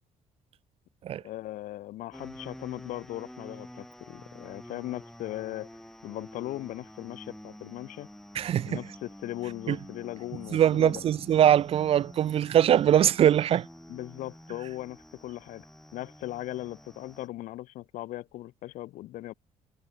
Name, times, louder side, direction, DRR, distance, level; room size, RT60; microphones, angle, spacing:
voice 1, 1.2-5.7 6.0-8.1 8.7-11.0 13.9-15.7 15.9-19.3, left 15 dB, 85° left, 3.9 m, -38 dB
sound 1, 2.1-17.3, left 1 dB, 5° left, 7.7 m, -48 dB
voice 2, 8.4-8.8 9.7-9.8 10.5-13.7, right 10 dB, 50° right, 0.4 m, -22 dB
cardioid pair, 125°, 13 cm